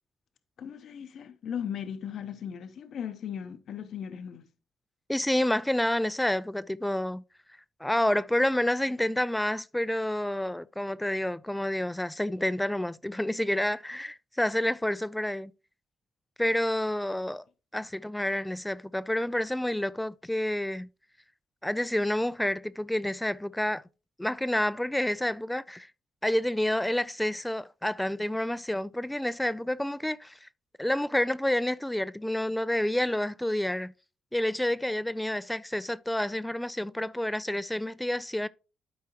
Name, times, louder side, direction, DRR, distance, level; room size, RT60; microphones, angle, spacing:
voice 1, 0.6-4.5, left 8 dB, 65° left, 0.7 m, -37 dB
voice 2, 5.1-7.2 7.8-15.5 16.4-17.4 17.7-20.9 21.6-23.8 24.2-25.9 26.2-30.5 30.8-33.9 34.3-38.5, left 1 dB, 5° left, 0.3 m, -29 dB
12.0 x 4.8 x 2.9 m
cardioid pair, 90°, 0 cm